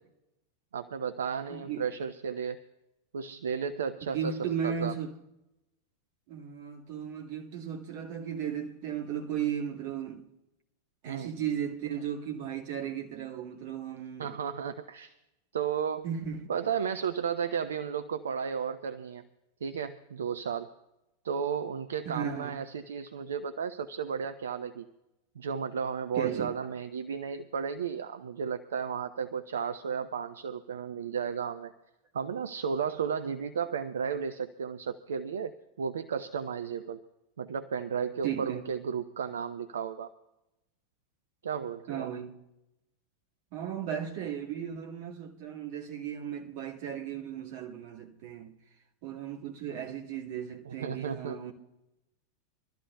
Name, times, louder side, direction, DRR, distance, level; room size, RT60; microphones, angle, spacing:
voice 1, 0.7-2.6 3.1-4.4 4.6-4.9 11.1-11.4 14.2-15.1 15.5-16.0 16.5-19.2 19.6-20.7 21.2-24.9 25.4-31.7 32.1-37.0 37.4-40.1 41.4-42.1 50.7-51.4, right 7 dB, 65° right, 0.6 m, -33 dB
voice 2, 1.5-1.9 4.1-5.2 6.3-10.3 11.0-14.4 16.0-16.5 22.0-22.6 26.1-26.6 38.2-38.7 41.9-42.4 43.5-48.6 49.0-51.5, right 8 dB, 45° right, 1.9 m, -35 dB
26.0 x 13.0 x 2.3 m
figure-of-eight pair, 90°, 0 cm